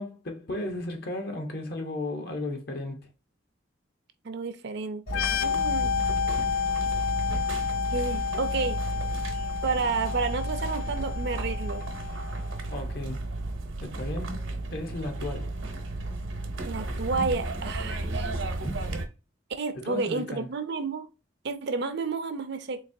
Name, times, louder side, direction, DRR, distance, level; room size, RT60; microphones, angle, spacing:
voice 1, 0.0-3.0 12.7-13.2 13.8-14.4 14.7-15.5 18.6-19.0 19.7-20.5, left 1 dB, 50° left, 0.8 m, -35 dB
voice 2, 4.2-5.9 7.9-8.8 9.6-11.8 16.7-18.3 19.5-21.1 21.4-22.8, right 4 dB, 55° right, 0.5 m, -31 dB
sound 1, 5.1-12.6, left 7 dB, 80° left, 0.3 m, -30 dB
sound 2, 5.1-19.1, right 2 dB, 80° right, 0.9 m, -33 dB
3.9 x 2.9 x 2.6 m
head